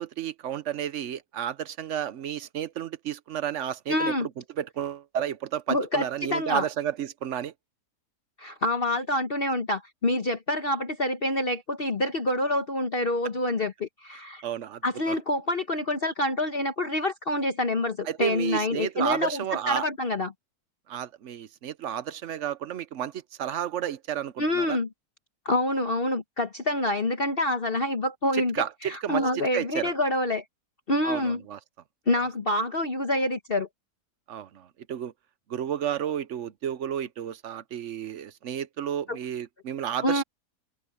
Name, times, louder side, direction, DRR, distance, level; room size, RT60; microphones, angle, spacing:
voice 1, 0.0-4.3 4.6-7.5 14.4-14.8 15.1-15.2 18.1-19.9 20.9-23.1 23.4-24.8 28.3-29.2 29.5-29.9 31.0-31.6 34.3-35.1 35.5-40.2, right 10 dB, 60° right, 0.9 m, -31 dB
voice 2, 3.9-4.3 5.7-6.6 8.4-14.4 14.8-20.3 24.4-24.9 25.4-28.6 28.8-30.4 30.9-31.4 32.1-33.7 39.1-39.2 40.0-40.2, left 1 dB, 40° left, 1.2 m, -27 dB
open air
omnidirectional pair, 1.7 m